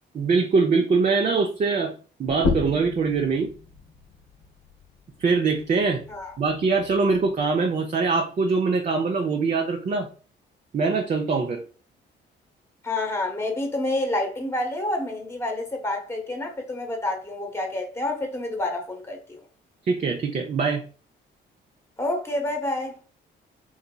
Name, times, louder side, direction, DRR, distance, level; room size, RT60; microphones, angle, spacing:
voice 1, 0.1-1.9 2.2-3.5 5.2-6.0 6.4-10.1 10.7-11.6 19.9-20.8, right 4 dB, 40° right, 0.6 m, -23 dB
sound 1, 2.3-7.5, left 3 dB, 80° left, 0.8 m, -33 dB
voice 2, 12.8-19.4 22.0-23.0, left 2 dB, 15° left, 1.1 m, -28 dB
3.9 x 2.8 x 2.2 m
cardioid pair, 90°, 20 cm